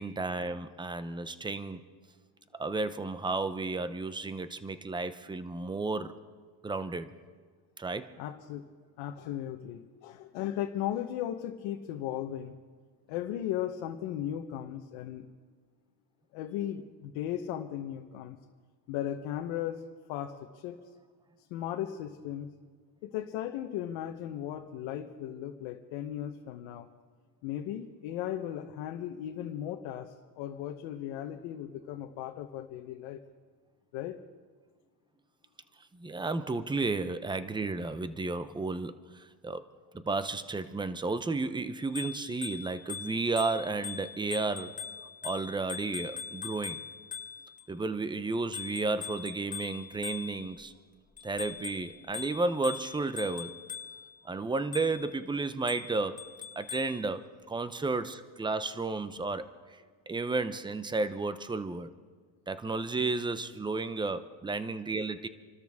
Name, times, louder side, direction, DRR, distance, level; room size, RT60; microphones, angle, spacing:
voice 1, 0.0-1.8 2.6-6.1 6.6-7.1 7.8-8.1 35.9-39.6 39.9-44.7 45.2-46.8 47.7-50.7 51.2-53.5 54.2-56.2 56.6-59.4 60.1-61.9 62.5-65.3, right 3 dB, 10° right, 12 dB, 0.7 m, -32 dB
voice 2, 8.2-8.7 9.0-12.6 13.1-15.3 16.3-18.4 18.9-19.8 20.1-20.8 21.5-22.5 23.0-26.9 27.4-33.2 33.9-34.2, left 11 dB, 85° left, 3 dB, 1.1 m, -36 dB
Bicycle bell, 41.8-47.6 48.5-50.6 51.2-54.1 54.7-55.1 55.7-57.0, left 7 dB, 15° left, 1.5 m, -42 dB
27.5 x 13.0 x 3.6 m, 1.5 s
cardioid pair, 110°, 44 cm